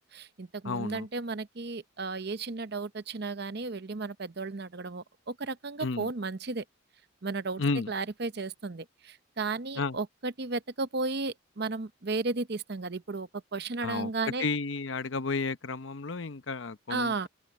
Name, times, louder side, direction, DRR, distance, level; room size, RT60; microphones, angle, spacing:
voice 1, 0.1-6.6 7.2-14.5 16.9-17.3, right 3 dB, 50° right, 0.8 m, -34 dB
voice 2, 0.6-1.1 5.8-6.1 7.6-7.9 9.8-10.0 13.8-14.1 14.4-17.3, left 3 dB, 65° left, 0.8 m, -32 dB
open air
head